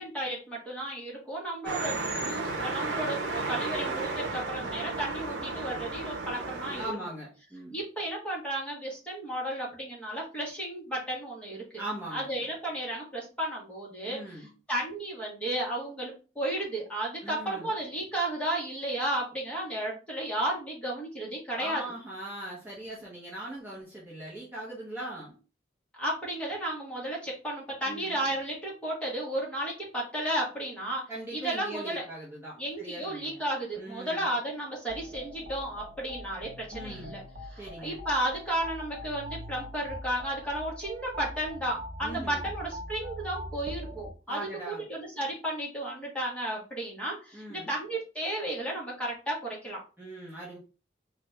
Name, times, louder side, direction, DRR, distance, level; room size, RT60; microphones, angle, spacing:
voice 1, 0.0-6.8 7.7-11.6 12.1-14.4 14.7-21.8 26.0-31.0 31.3-32.0 32.6-49.8, right 1 dB, 5° left, -5 dB, 1.3 m, -33 dB
sound 1, 1.6-6.9, right 3 dB, 85° right, 0.8 m, -33 dB
voice 2, 6.8-7.8 11.8-12.3 14.0-14.5 17.2-17.7 21.5-25.3 27.9-28.2 31.1-33.4 33.7-34.3 36.7-37.1 37.6-38.0 42.0-42.5 44.3-44.8 47.3-47.7 50.0-50.6, right 1 dB, 10° right, -7 dB, 1.0 m, -40 dB
sound 2, 34.9-44.1, equal, 50° right, 0.7 m, -42 dB
4.0 x 2.5 x 3.3 m, 0.34 s
head